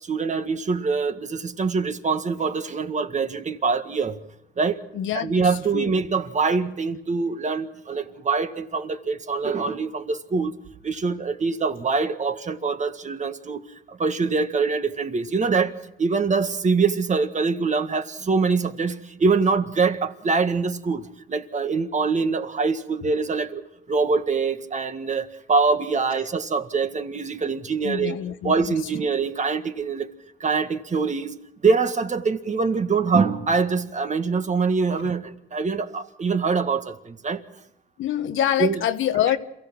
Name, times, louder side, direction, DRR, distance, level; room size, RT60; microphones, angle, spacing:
voice 1, 0.0-4.2 4.6-4.8 5.1-10.5 10.8-13.6 13.9-23.6 23.9-28.2 28.4-30.1 30.4-31.4 31.6-37.4 38.6-38.8, right 4 dB, 35° right, 8 dB, 1.8 m, -24 dB
voice 2, 4.9-5.3 5.7-5.9 27.8-28.8 38.0-39.4, left 10 dB, 80° left, 10 dB, 1.3 m, -25 dB
27.5 x 16.0 x 6.2 m, 0.83 s
cardioid pair, 90°, 20 cm